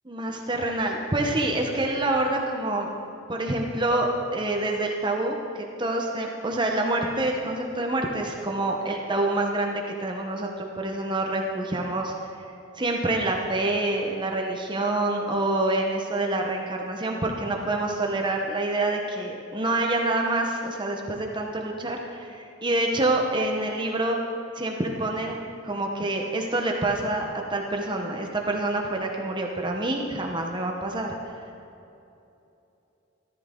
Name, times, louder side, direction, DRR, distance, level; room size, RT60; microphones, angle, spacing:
voice 1, 0.1-2.9 3.3-12.1 12.7-24.2 24.6-25.4 25.6-31.1, right 2 dB, 25° right, 1 dB, 0.9 m, -27 dB
13.5 x 12.5 x 3.7 m, 2.8 s
head